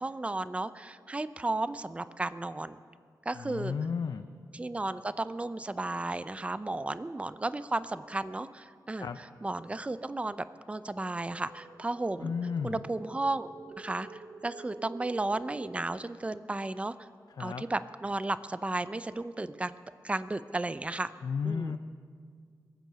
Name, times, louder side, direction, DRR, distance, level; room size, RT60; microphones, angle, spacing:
voice 1, 0.0-2.8 3.3-3.7 4.5-9.1 9.4-12.3 12.6-13.5 13.8-14.1 14.4-16.9 17.4-19.8 20.0-21.1 21.4-21.8, right 2 dB, 20° right, 13 dB, 0.5 m, -34 dB
voice 2, 3.3-4.3 8.9-9.2 12.2-12.8 17.4-17.6 21.2-21.8, left 6 dB, 70° left, 8 dB, 0.6 m, -33 dB
sound 1, 10.8-15.8, right 4 dB, 60° right, 1.1 m, -49 dB
22.5 x 9.2 x 6.8 m, 2.1 s
wide cardioid pair, 120°, 7 cm